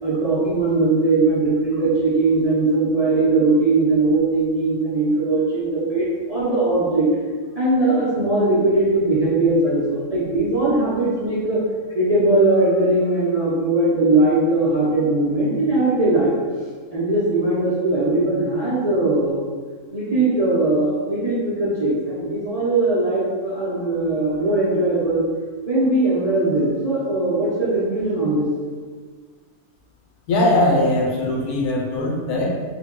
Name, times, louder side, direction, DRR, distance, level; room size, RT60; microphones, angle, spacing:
voice 1, 0.0-7.1 7.5-11.6 11.9-16.3 16.9-19.4 19.9-25.2 25.6-28.5, right 2 dB, 35° right, -10 dB, 0.6 m, -20 dB
voice 2, 30.3-32.5, left 1 dB, 80° left, -2 dB, 1.2 m, -20 dB
3.7 x 2.2 x 3.6 m, 1.5 s
omnidirectional pair, 1.6 m